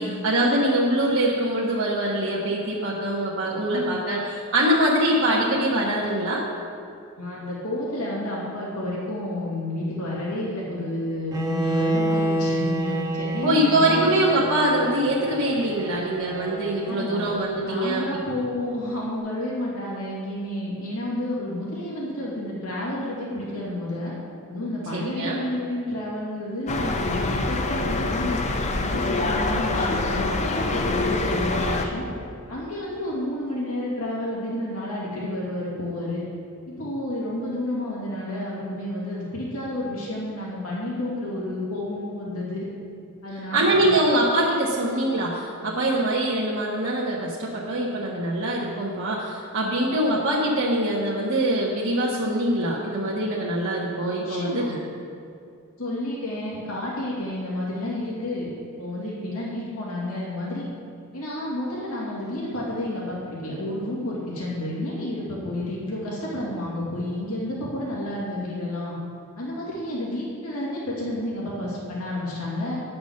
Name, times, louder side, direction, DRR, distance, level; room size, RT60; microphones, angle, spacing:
voice 1, 0.0-6.4 13.4-18.2 24.9-25.4 43.5-54.7, right 1 dB, 60° right, -6 dB, 1.2 m, -23 dB
voice 2, 3.4-3.9 7.2-14.1 16.8-17.3 17.6-24.1 24.5-28.4 28.8-32.1 32.5-36.2 36.7-42.7 43.2-43.9 54.2-54.8 55.8-58.5 58.8-60.7 61.1-68.9 69.4-72.8, left 1 dB, 85° left, -6 dB, 2.6 m, -30 dB
Bowed string instrument, 11.3-17.4, right 1 dB, 20° right, 0.9 m, -28 dB
sound 1, 26.7-31.9, left 2 dB, 30° left, 0.6 m, -25 dB
9.8 x 6.1 x 6.4 m, 2.4 s
head